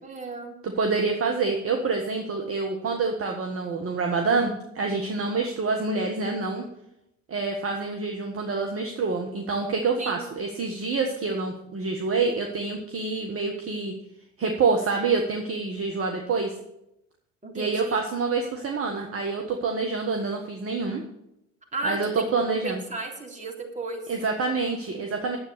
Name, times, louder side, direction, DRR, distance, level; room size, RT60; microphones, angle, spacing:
voice 1, 0.0-0.5 5.4-5.5 10.0-10.2 17.4-18.0 21.7-24.0, right 3 dB, 20° right, 0 dB, 3.4 m, -34 dB
voice 2, 0.6-6.6 7.3-13.9 14.4-16.5 17.5-21.0 21.8-22.8 24.1-25.4, right 4 dB, 35° right, 2 dB, 1.6 m, -27 dB
10.0 x 8.2 x 6.9 m, 0.82 s
figure-of-eight pair, 55°, 37 cm